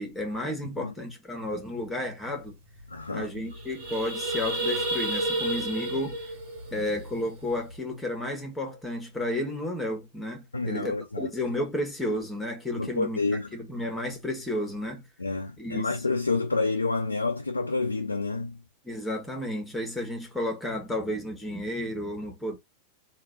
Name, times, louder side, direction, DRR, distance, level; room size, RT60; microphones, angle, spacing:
voice 1, 0.0-2.6 3.1-6.2 6.7-13.2 13.5-15.1 15.6-15.9 18.8-22.6, left 1 dB, 10° left, 1.7 m, -32 dB
sound 1, 2.5-2.6 2.8-3.0 3.4-7.7, right 1 dB, 55° right, 1.6 m, -31 dB
voice 2, 2.9-3.5 10.5-11.3 12.8-13.5 15.2-18.6, left 3 dB, 80° left, 0.5 m, -29 dB
3.7 x 2.7 x 3.9 m
figure-of-eight pair, 90°, 0 cm